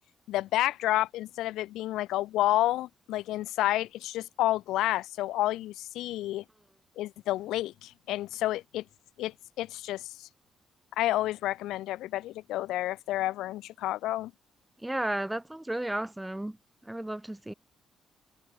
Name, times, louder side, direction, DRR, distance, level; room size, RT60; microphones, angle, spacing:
voice 1, 0.3-6.4 7.0-8.8 9.2-10.3 11.0-14.3, left 15 dB, 90° left, 2.2 m, -30 dB
voice 2, 14.8-16.6 16.8-17.5, right 1 dB, 10° right, 2.6 m, -33 dB
cardioid pair, 90°, 0 cm